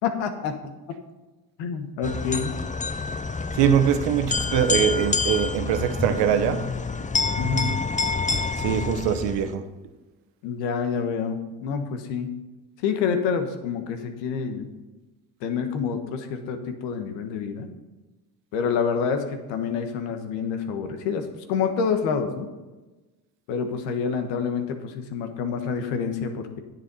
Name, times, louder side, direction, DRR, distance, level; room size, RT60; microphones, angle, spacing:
voice 1, 0.0-0.7 1.6-2.5 7.4-7.7 10.4-12.3 12.8-14.7 15.4-17.7 18.5-22.5 23.5-26.6, left 6 dB, 85° left, 1.4 m, -27 dB
sound 1, 2.0-9.5, left 4 dB, 20° left, 0.6 m, -27 dB
voice 2, 3.6-6.7 8.6-9.6, right 9 dB, 80° right, 1.1 m, -22 dB
10.5 x 7.5 x 5.5 m
supercardioid pair, 70°, 42 cm